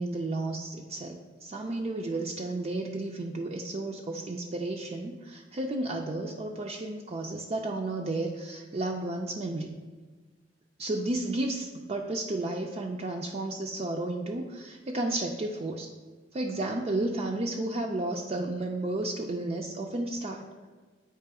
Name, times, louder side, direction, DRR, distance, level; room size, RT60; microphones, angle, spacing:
voice 1, 0.0-9.7 10.8-15.9 16.3-20.5, right 2 dB, 35° right, 1 dB, 0.4 m, -32 dB
8.6 x 3.0 x 4.7 m, 1.3 s
head